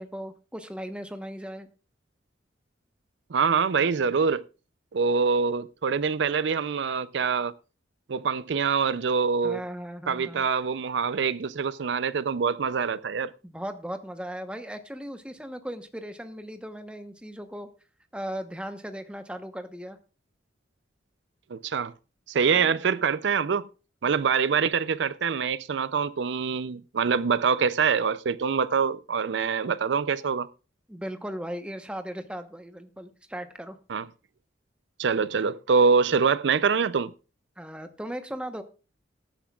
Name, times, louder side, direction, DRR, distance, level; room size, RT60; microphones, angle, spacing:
voice 1, 0.0-1.7 9.4-10.5 13.4-17.7 18.1-20.0 22.5-22.8 30.9-33.8 37.6-38.6, equal, 5° right, 1.0 m, -37 dB
voice 2, 3.3-4.4 4.9-7.5 8.1-9.6 10.1-13.3 21.5-21.9 22.3-23.7 24.0-30.5 33.9-34.0 35.0-37.1, right 5 dB, 70° right, 0.5 m, -25 dB
19.0 x 10.0 x 2.4 m
head